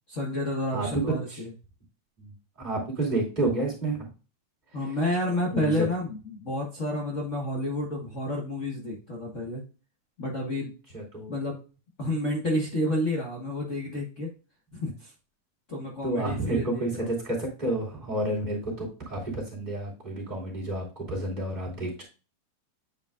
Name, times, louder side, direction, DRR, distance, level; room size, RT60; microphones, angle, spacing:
voice 1, 0.1-1.5 4.7-9.6 10.2-10.7 11.3-11.6 12.0-14.3 14.7-15.1 15.7-17.1, left 1 dB, 65° left, -1 dB, 0.7 m, -30 dB
voice 2, 2.6-4.1 5.5-5.9 10.9-11.4 16.0-22.0, right 2 dB, 15° right, -4 dB, 2.5 m, -30 dB
8.9 x 5.3 x 2.4 m, 0.34 s
omnidirectional pair, 3.6 m